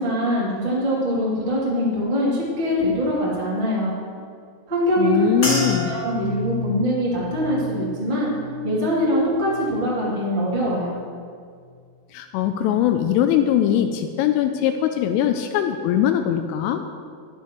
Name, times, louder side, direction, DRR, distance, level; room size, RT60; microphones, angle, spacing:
voice 1, 0.0-3.9 4.7-5.1 5.9-8.3 8.6-11.0, equal, 20° right, -7 dB, 1.3 m, -23 dB
voice 2, 5.0-6.0 12.1-16.8, left 10 dB, 85° left, 7 dB, 3.0 m, -21 dB
sound 1, 5.4-9.9 10.3-10.9 11.5-11.8, left 2 dB, 30° left, 1.3 m, -32 dB
12.5 x 11.5 x 3.1 m, 2.1 s
omnidirectional pair, 5.8 m